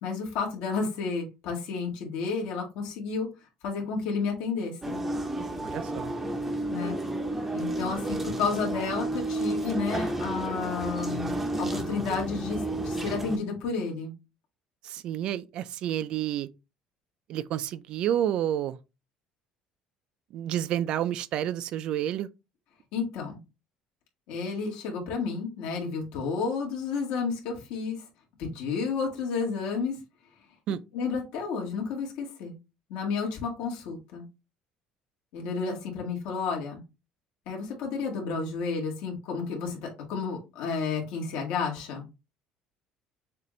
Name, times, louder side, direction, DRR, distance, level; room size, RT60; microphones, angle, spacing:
voice 1, 0.0-3.3 3.6-5.0 6.7-7.0 7.5-11.3 11.6-14.1 22.9-23.4 24.3-28.0 28.4-29.9 30.9-32.6 32.9-34.2 35.3-36.8 37.5-42.0, left 5 dB, 70° left, 1.9 m, -31 dB
sound 1, 4.8-13.4, right 2 dB, 10° right, 0.6 m, -31 dB
voice 2, 5.6-6.1 14.8-16.5 17.3-18.8 20.3-22.3 30.7-30.8, right 11 dB, 45° right, 0.4 m, -30 dB
6.5 x 2.6 x 3.2 m
cardioid pair, 170°, 2 cm